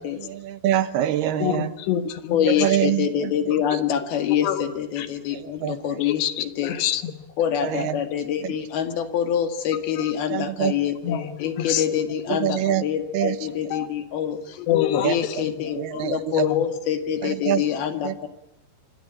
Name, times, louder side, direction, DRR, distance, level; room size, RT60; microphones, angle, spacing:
voice 1, 0.3-1.7 2.6-3.1 5.6-5.8 7.7-7.9 10.3-10.7 12.4-12.8 13.1-13.4 15.0-15.2 15.8-16.2 17.5-17.6 18.0-18.1, right 12 dB, 75° right, 12 dB, 3.1 m, -23 dB
voice 2, 1.4-2.5 4.4-4.6 5.0-5.1 6.0-7.1 10.0-10.1 11.0-11.8 12.3-12.4 13.7-13.9 14.6-15.4 16.4-16.6, left 10 dB, 85° left, 10 dB, 3.6 m, -26 dB
voice 3, 2.3-6.8 7.4-14.6 15.0-18.3, left 9 dB, 65° left, 7 dB, 3.8 m, -26 dB
26.0 x 26.0 x 8.8 m, 0.77 s
omnidirectional pair, 4.8 m